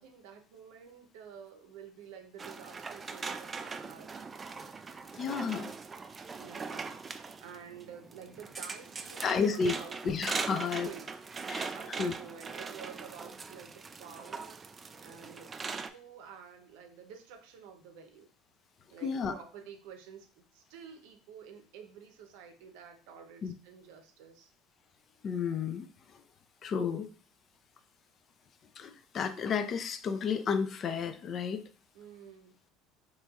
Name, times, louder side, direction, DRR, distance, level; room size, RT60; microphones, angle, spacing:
voice 1, 0.0-4.3 6.4-10.0 10.5-14.7 15.0-18.3 18.9-24.5 31.9-32.6, right 7 dB, 70° right, 5 dB, 0.6 m, -50 dB
sound 1, 2.4-15.9, right 4 dB, 30° right, 0.3 m, -41 dB
voice 2, 5.1-5.7 9.2-9.7 10.0-10.9 11.5-12.1 19.0-19.3 23.4-23.5 25.2-25.9 26.1-26.2 26.6-27.1 28.8-31.6, left 6 dB, 45° left, 11 dB, 0.4 m, -32 dB
4.0 x 3.0 x 2.3 m, 0.40 s
hypercardioid pair, 80°, 0 cm